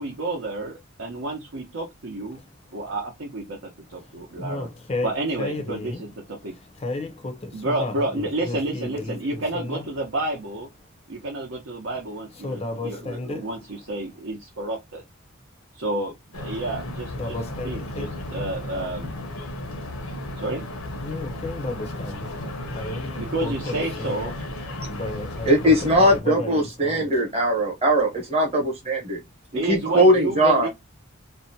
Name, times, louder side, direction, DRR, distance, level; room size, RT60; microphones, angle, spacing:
voice 1, 0.0-2.4 2.7-4.7 5.0-6.5 7.5-10.7 11.1-15.0 15.7-19.1 20.4-20.6 23.1-24.3 29.5-30.7, right 2 dB, 70° right, 0.7 m, -30 dB
voice 2, 4.0-6.1 6.4-9.8 12.3-13.5 17.1-18.2 21.0-24.4 24.7-27.1, left 2 dB, 30° left, 0.5 m, -33 dB
sound 1, 16.3-26.2, left 1 dB, 85° left, 0.7 m, -34 dB
voice 3, 25.5-29.2 29.7-30.7, equal, 30° right, 0.9 m, -20 dB
2.6 x 2.1 x 2.6 m
head